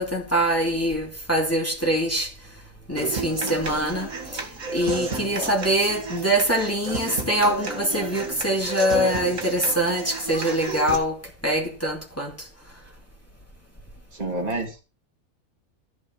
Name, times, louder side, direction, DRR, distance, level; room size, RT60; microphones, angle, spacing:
voice 1, 0.0-2.3 2.9-4.4 4.7-11.2 11.4-12.3, right 1 dB, 10° left, 2.8 m, -24 dB
Human voice / Acoustic guitar, 3.0-11.0, right 3 dB, 65° right, 2.0 m, -32 dB
voice 2, 14.1-14.8, right 2 dB, 30° right, 2.7 m, -29 dB
14.5 x 4.9 x 7.4 m
omnidirectional pair, 1.5 m